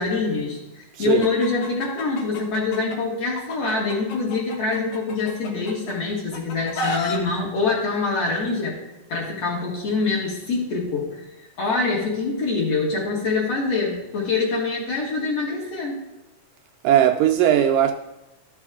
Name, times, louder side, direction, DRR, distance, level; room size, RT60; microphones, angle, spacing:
voice 1, 0.0-8.8 9.1-16.0, left 3 dB, 50° left, -3 dB, 2.4 m, -25 dB
voice 2, 0.9-1.3 16.8-17.9, right 10 dB, 80° right, 4 dB, 2.0 m, -18 dB
Chicken rooster, 1.2-3.0 3.4-5.9 6.3-7.2, left 3 dB, 85° left, 2.8 m, -31 dB
12.5 x 5.7 x 3.6 m, 0.99 s
omnidirectional pair, 4.1 m